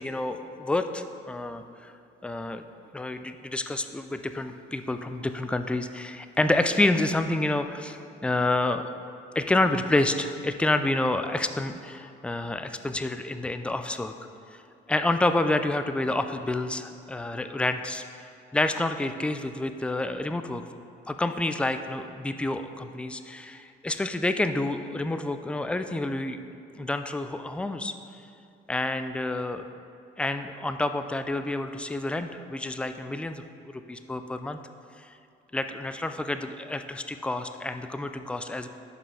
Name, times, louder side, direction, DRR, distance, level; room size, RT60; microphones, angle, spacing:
voice 1, 0.0-1.9 2.2-2.6 2.9-8.9 9.4-14.1 14.5-14.6 14.9-18.0 18.5-20.6 21.1-27.9 28.7-29.6 30.2-33.4 33.9-34.6 35.0-35.1 35.5-38.7, left 2 dB, 5° left, 8 dB, 0.3 m, -28 dB
5.4 x 5.2 x 5.6 m, 2.6 s
cardioid pair, 90°, 20 cm